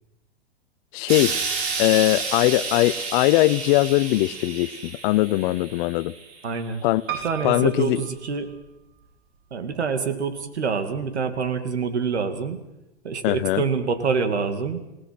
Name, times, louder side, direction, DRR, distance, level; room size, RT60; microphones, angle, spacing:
voice 1, 0.9-1.4 1.8-6.1 6.8-7.0 7.4-8.0 13.2-13.6, left 18 dB, 50° left, 0.8 m, -21 dB
Explosion, 1.1-6.4 7.2-7.3, right 4 dB, 70° right, 6.5 m, -30 dB
voice 2, 6.4-6.9 7.2-8.5 9.5-12.6 13.0-14.8, right 5 dB, 85° right, 2.7 m, -26 dB
Piano, 7.1-9.1 9.7-10.4 10.7-10.8 11.0-11.1, right 9 dB, 40° right, 3.1 m, -36 dB
27.5 x 17.5 x 6.1 m
hypercardioid pair, 115°, 33 cm